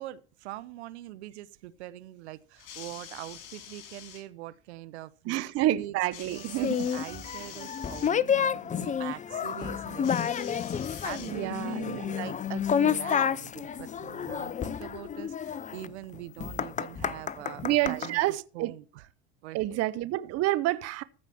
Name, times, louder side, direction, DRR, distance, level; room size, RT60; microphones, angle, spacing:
voice 1, 0.0-5.4 5.7-19.1 19.4-19.8, right 15 dB, 80° right, 0.9 m, -43 dB
sound 1, 2.6-4.2 6.1-8.2 10.0-11.7 12.7-12.8, left 9 dB, 65° left, 4.0 m, -46 dB
voice 2, 5.3-7.2 11.3-12.0 17.6-18.7 19.5-21.0, right 16 dB, 50° right, 0.8 m, -29 dB
sound 2, 6.5-18.1, left 8 dB, 25° left, 0.7 m, -30 dB
15.0 x 5.0 x 7.0 m
supercardioid pair, 95°, 33 cm